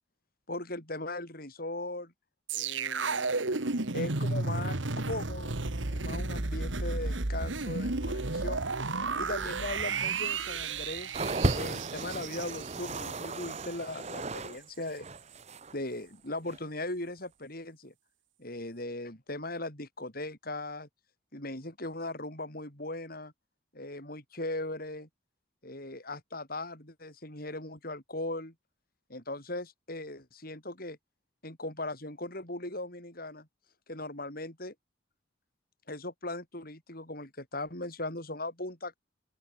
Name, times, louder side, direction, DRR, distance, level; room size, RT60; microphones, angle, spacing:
voice 1, 0.5-2.1 2.5-3.3 3.9-4.8 5.1-5.5 5.9-8.6 9.2-11.2 11.5-15.1 15.7-17.9 18.4-20.9 21.3-23.3 23.7-25.1 25.6-28.5 29.1-31.0 31.4-33.5 33.9-34.7 35.9-39.0, left 2 dB, 50° left, 7.6 m, -38 dB
sound 1, 2.5-13.7 14.0-14.2, right 3 dB, 75° right, 1.8 m, -33 dB
sound 2, 11.1-14.6 14.8-15.7 16.5-16.6, right 2 dB, 35° right, 1.3 m, -34 dB
open air
head